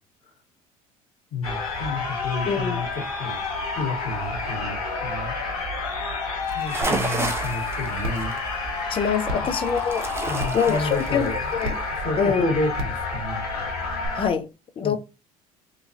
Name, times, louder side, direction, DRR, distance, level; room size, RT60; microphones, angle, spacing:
voice 1, 1.3-3.4 3.7-5.6 6.5-8.4 9.3-9.5 10.3-11.5 12.0-13.5 14.8-15.0, left 2 dB, 45° left, 1.8 m, -31 dB
sound 1, 1.4-14.3, left 3 dB, 85° left, 0.8 m, -29 dB
voice 2, 2.5-2.8 8.9-10.0 10.5-11.8 12.2-12.5 14.1-14.5 14.8-15.0, left 7 dB, 30° left, 0.5 m, -24 dB
sound 2, 6.4-12.2, right 3 dB, 15° right, 0.7 m, -32 dB
sound 3, 6.8-6.9 7.4-7.5 8.0-8.3 9.3-9.4 10.4-10.6 11.6-11.7 12.7-13.0 14.0-14.1, equal, 65° right, 0.7 m, -30 dB
3.0 x 2.4 x 2.5 m
hypercardioid pair, 65°, 18 cm